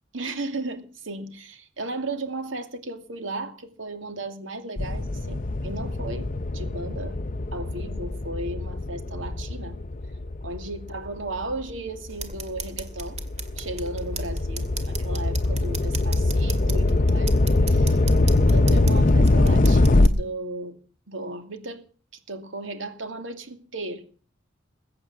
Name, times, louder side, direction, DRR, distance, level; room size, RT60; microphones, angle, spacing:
voice 1, 0.1-6.3 6.5-7.2 7.5-9.8 10.4-13.2 13.6-17.4 17.7-18.0 18.5-20.8 21.1-21.8 22.3-24.1, right 2 dB, 75° right, 2.7 m, -35 dB
sound 1, 4.8-11.5 12.1-20.1, left 2 dB, 40° left, 0.7 m, -22 dB
sound 2, 12.1-20.1, right 4 dB, 35° right, 2.3 m, -38 dB
21.5 x 8.7 x 7.6 m
head